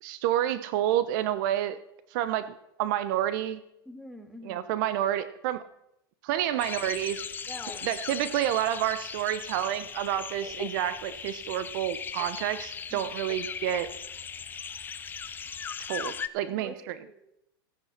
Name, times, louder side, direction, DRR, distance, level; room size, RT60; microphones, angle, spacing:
voice 1, 0.0-1.8 2.1-2.5 2.8-3.6 4.4-5.6 6.2-7.2 7.8-13.9 15.9-16.9, right 12 dB, 55° right, 15 dB, 0.9 m, -29 dB
voice 2, 3.9-4.7 7.5-7.9 12.9-13.1 16.5-16.8 17.0-17.2, equal, ahead, 4 dB, 1.7 m, -45 dB
sound 1, 6.6-16.3, left 7 dB, 15° left, 0.5 m, -38 dB
15.5 x 10.0 x 5.8 m, 0.81 s
supercardioid pair, 145°, 12 cm